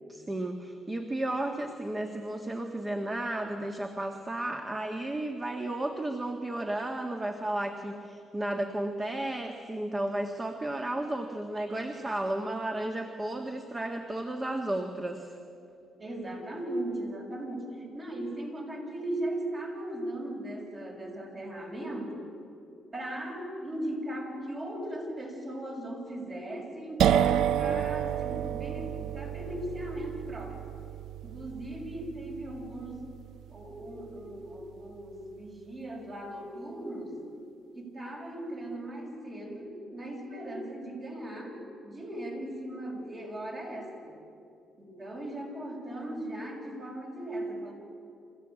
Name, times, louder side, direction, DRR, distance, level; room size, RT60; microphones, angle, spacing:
voice 1, 0.1-15.3, right 1 dB, 20° right, 4 dB, 1.6 m, -33 dB
voice 2, 16.0-22.3 22.9-30.7 31.2-33.1 33.5-37.2 37.7-44.2 44.8-47.7, right 1 dB, 40° right, 0 dB, 6.7 m, -38 dB
sound 1, 27.0-34.6, right 10 dB, 80° right, 0.5 m, -31 dB
27.5 x 15.5 x 8.8 m, 2.6 s
cardioid pair, 90°, 0 cm